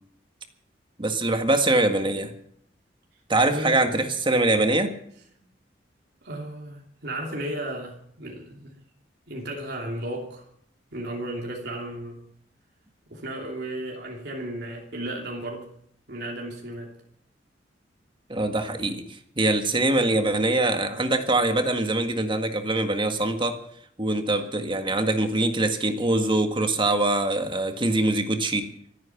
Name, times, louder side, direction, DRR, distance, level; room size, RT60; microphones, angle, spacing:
voice 1, 1.0-2.3 3.3-4.9 18.3-23.6 24.0-28.7, right 2 dB, 25° right, 7 dB, 1.7 m, -23 dB
voice 2, 3.5-3.9 6.2-8.8 9.3-10.5 10.9-12.2 13.1-15.7 16.1-16.9, right 1 dB, 60° right, -1 dB, 2.9 m, -34 dB
25.5 x 9.3 x 5.9 m, 0.67 s
head